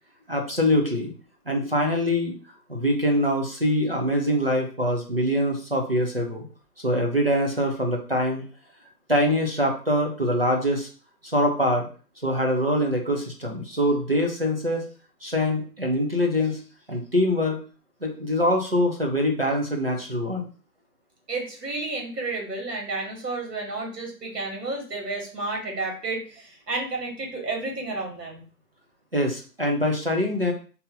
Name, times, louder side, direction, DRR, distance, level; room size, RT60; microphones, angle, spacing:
voice 1, 0.3-1.1 1.5-2.4 2.7-6.4 6.8-8.4 9.1-10.9 11.3-11.9 12.2-14.8 15.2-16.6 16.9-17.6 18.0-20.5 29.1-30.5, equal, 40° right, 1 dB, 0.5 m, -24 dB
voice 2, 21.3-28.4, right 3 dB, 70° right, 1 dB, 1.7 m, -31 dB
2.8 x 2.6 x 3.8 m, 0.38 s
hypercardioid pair, 165°, 49 cm